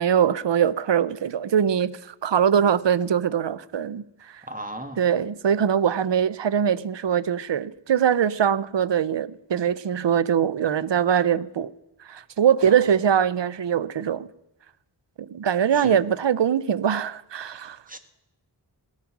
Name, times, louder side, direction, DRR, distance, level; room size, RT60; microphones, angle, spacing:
voice 1, 0.0-4.4 5.0-11.7 12.1-14.3 15.2-17.8, right 8 dB, 70° right, 0.6 m, -22 dB
voice 2, 4.5-5.0 12.6-12.8 15.7-16.0 17.6-18.0, right 1 dB, 20° right, 1.5 m, -37 dB
17.5 x 9.4 x 6.0 m
wide cardioid pair, 50°, 45 cm